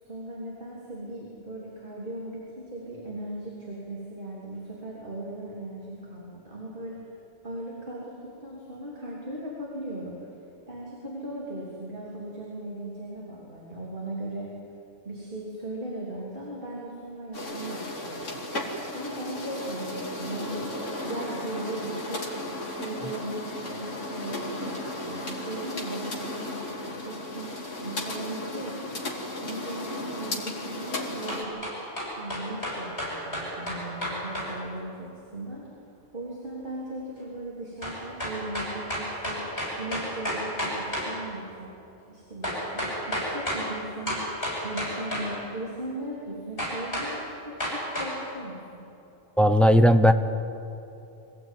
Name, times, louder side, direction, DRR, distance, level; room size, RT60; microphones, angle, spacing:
voice 1, 0.0-7.1 7.4-10.3 10.7-14.5 15.0-18.4 18.9-20.7 21.0-22.3 22.7-27.5 27.8-29.0 29.4-31.7 32.2-35.7 36.1-39.5 39.8-41.7 42.1-44.2 44.6-48.8, right 1 dB, 45° right, -5 dB, 3.5 m, -38 dB
sound 1, 17.3-31.4, left 1 dB, 85° left, 3.0 m, -35 dB
sound 2, 31.3-34.5 37.8-41.1 42.4-43.7 44.1-45.3 46.6-47.1 47.6-48.1, equal, 50° left, 8.5 m, -31 dB
voice 2, 49.4-50.1, equal, ahead, 8 dB, 0.7 m, -17 dB
24.5 x 16.5 x 9.4 m, 2.8 s
omnidirectional pair, 1.3 m